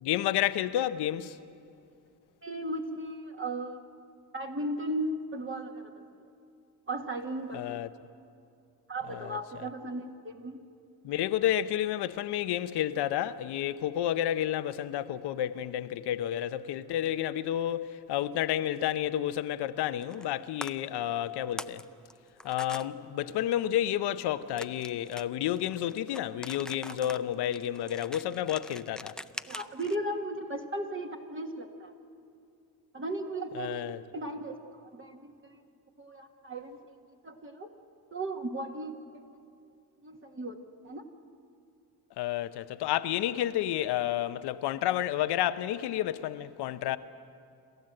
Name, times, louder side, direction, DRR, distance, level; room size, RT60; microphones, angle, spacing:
voice 1, 0.0-1.4 7.5-7.9 9.1-9.4 11.0-21.8 22.4-29.2 33.5-34.0 42.2-47.0, left 12 dB, 85° left, 0.8 m, -30 dB
voice 2, 2.4-3.8 4.3-5.9 6.9-7.8 8.9-10.6 26.9-27.0 29.5-31.9 32.9-33.9 34.1-35.6 36.0-37.0 37.2-37.7 38.1-39.0 39.3-39.4 40.0-40.6 40.8-41.1, right 1 dB, 30° right, 1.7 m, -36 dB
sound 1, 20.0-20.4 20.6-20.7 21.3-21.8 22.1-22.9 24.6-30.0, left 1 dB, ahead, 0.5 m, -43 dB
28.0 x 13.5 x 7.8 m
cardioid pair, 85°, 39 cm